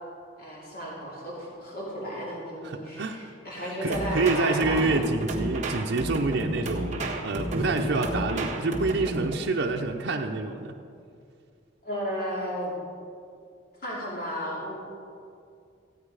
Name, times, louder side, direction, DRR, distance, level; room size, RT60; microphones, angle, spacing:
voice 1, 0.4-5.0 11.8-12.7 13.8-14.7, equal, 50° left, -5 dB, 2.8 m, -33 dB
voice 2, 2.6-3.3 3.6-10.7, right 3 dB, 75° right, 1 dB, 0.7 m, -27 dB
sound 1, 3.9-9.4, right 1 dB, 40° right, 1.6 m, -31 dB
15.0 x 9.5 x 4.9 m, 2.4 s
head